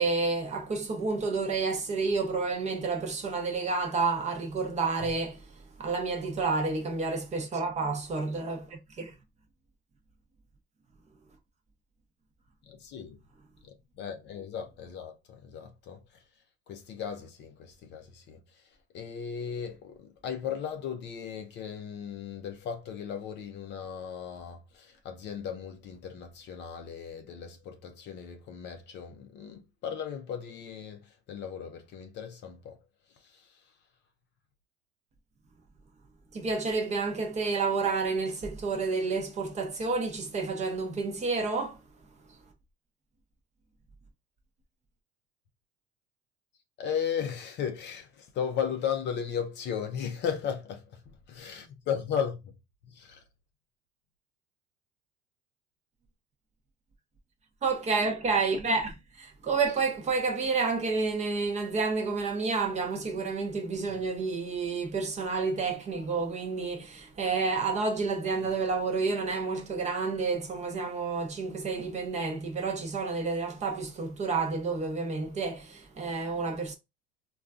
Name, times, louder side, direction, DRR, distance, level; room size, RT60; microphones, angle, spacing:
voice 1, 0.0-5.5 5.8-9.1 36.3-41.8 57.6-76.8, right 4 dB, 20° right, 0.6 m, -30 dB
voice 2, 12.7-13.2 13.6-16.2 16.7-32.8 33.2-33.6 46.8-52.6 52.8-53.2, left 8 dB, 35° left, 0.4 m, -36 dB
3.7 x 2.3 x 2.3 m
supercardioid pair, 135°, 31 cm